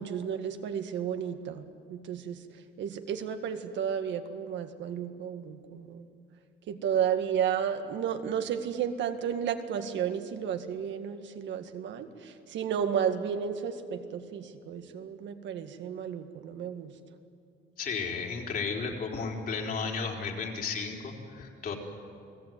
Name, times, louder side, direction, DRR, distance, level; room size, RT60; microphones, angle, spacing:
voice 1, 0.0-1.6 1.9-2.4 2.8-6.1 6.7-16.9, right 8 dB, 75° right, 7 dB, 1.9 m, -32 dB
voice 2, 17.8-21.7, left 5 dB, 50° left, 1 dB, 4.1 m, -33 dB
30.0 x 19.5 x 9.4 m, 2.5 s
cardioid pair, 155°, 19 cm